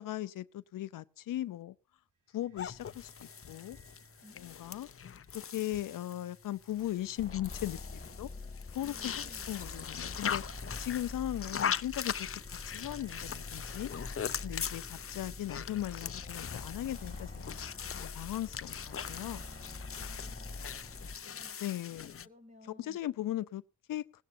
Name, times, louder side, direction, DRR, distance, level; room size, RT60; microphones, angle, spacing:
voice 1, 0.0-1.7 2.3-3.8 4.4-4.9 5.3-8.3 8.7-10.4 10.8-13.9 14.4-17.6 18.0-19.4 21.6-22.1 22.8-23.6 23.9-24.0, left 13 dB, 90° left, 0.7 m, -38 dB
sound 1, 2.3-21.2, right 3 dB, 70° right, 5.4 m, -60 dB
sound 2, 2.6-22.3, left 7 dB, 45° left, 0.7 m, -41 dB
voice 2, 4.2-4.8 8.8-9.5 19.9-23.0, left 1 dB, 25° right, 5.8 m, -59 dB
sound 3, 7.2-21.2, left 3 dB, 25° left, 2.8 m, -46 dB
19.0 x 16.0 x 2.7 m
cardioid pair, 55°, 32 cm